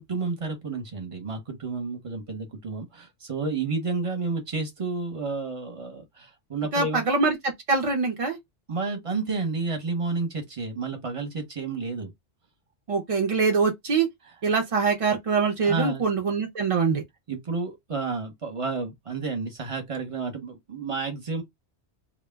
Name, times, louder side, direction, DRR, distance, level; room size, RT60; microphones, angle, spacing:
voice 1, 0.0-7.0 8.7-12.1 15.6-16.0 17.3-21.4, right 4 dB, 35° right, 0.7 m, -31 dB
voice 2, 6.7-8.4 12.9-14.1 14.4-17.0, right 4 dB, 55° right, 0.4 m, -24 dB
2.1 x 2.1 x 3.3 m
omnidirectional pair, 1.2 m